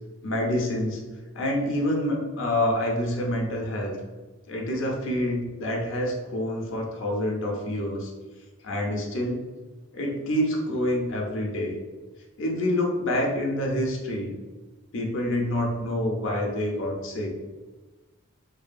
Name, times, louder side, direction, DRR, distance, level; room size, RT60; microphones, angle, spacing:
voice 1, 0.2-1.0 1.3-4.0 4.5-8.1 8.6-9.4 9.9-11.7 12.4-14.3 14.9-17.3, left 1 dB, 60° left, 0 dB, 0.5 m, -27 dB
2.6 x 2.2 x 2.4 m, 1.2 s
head